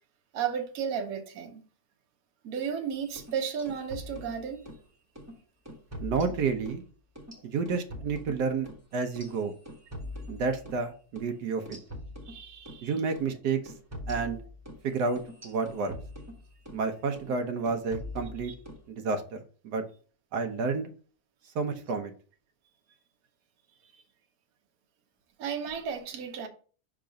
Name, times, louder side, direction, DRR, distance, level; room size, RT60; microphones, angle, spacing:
voice 1, 0.3-1.6 2.4-4.7 12.3-12.9 18.4-18.5 23.9-24.0 25.4-26.5, right 7 dB, 65° right, 1.3 m, -34 dB
sound 1, 3.0-4.8 5.2-5.3 5.7-6.8 7.2-10.8 11.2-11.3 11.7-12.8 13.2-13.3 13.7-16.8 17.2-17.4 17.7-18.8, left 1 dB, 10° right, 1.0 m, -43 dB
voice 2, 6.0-6.8 7.4-9.5 10.3-11.8 12.8-13.7 14.1-14.4 14.8-15.9 16.7-18.5 18.9-19.4 19.6-19.8 20.3-20.9 21.5-22.1, right 4 dB, 85° right, 1.4 m, -30 dB
5.8 x 3.8 x 5.0 m
omnidirectional pair, 1.7 m